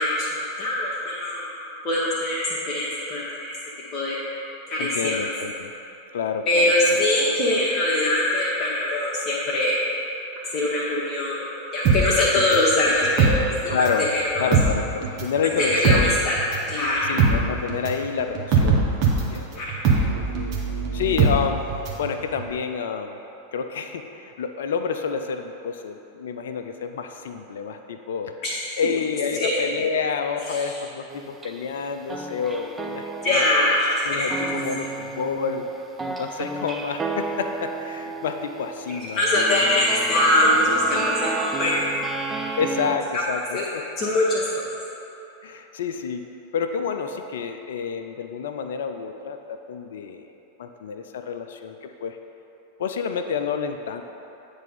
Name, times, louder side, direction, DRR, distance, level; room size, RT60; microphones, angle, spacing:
voice 1, 0.0-1.5 1.8-3.2 3.9-4.2 4.7-5.2 6.5-9.7 10.4-14.4 15.4-16.0 16.2-16.4 16.7-17.1 19.6-19.7 28.4-28.5 29.3-29.6 33.2-34.3 38.9-41.9 43.5-43.6 44.0-44.5, left 1 dB, 35° left, -7 dB, 1.0 m, -22 dB
voice 2, 4.8-5.7 6.1-7.0 8.3-8.4 13.7-14.1 14.4-16.2 17.0-19.0 19.3-19.5 20.9-21.6 22.0-23.2 23.5-28.4 28.8-33.5 34.0-35.6 36.2-39.8 42.6-43.8 45.4-46.2 46.5-50.2 50.6-52.2 52.8-54.0, left 6 dB, 60° left, 7 dB, 0.4 m, -29 dB
sound 1, 11.9-14.1 14.4-22.1 22.4-22.5, right 4 dB, 40° right, 1.1 m, -21 dB
sound 2, 31.1-31.8 32.1-43.0, right 3 dB, 15° right, 0.4 m, -33 dB
9.0 x 3.4 x 5.4 m, 3.0 s
figure-of-eight pair, 90°, 0 cm